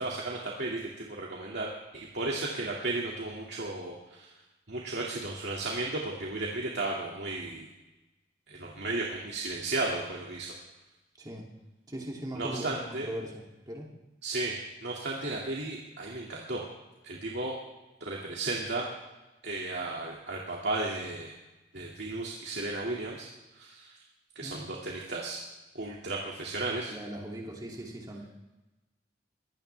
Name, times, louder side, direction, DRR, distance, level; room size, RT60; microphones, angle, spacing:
voice 1, 0.0-4.3 4.7-7.7 8.5-10.5 12.3-13.1 14.2-16.6 17.0-17.6 18.0-18.9 19.4-21.3 21.7-24.0 24.4-25.4 25.7-26.9, right 2 dB, 70° right, -3 dB, 2.2 m, -34 dB
voice 2, 11.2-11.5 11.9-13.9 24.4-24.7 26.9-28.3, right 1 dB, 20° right, -2 dB, 2.6 m, -39 dB
23.0 x 16.5 x 3.4 m, 1.1 s
head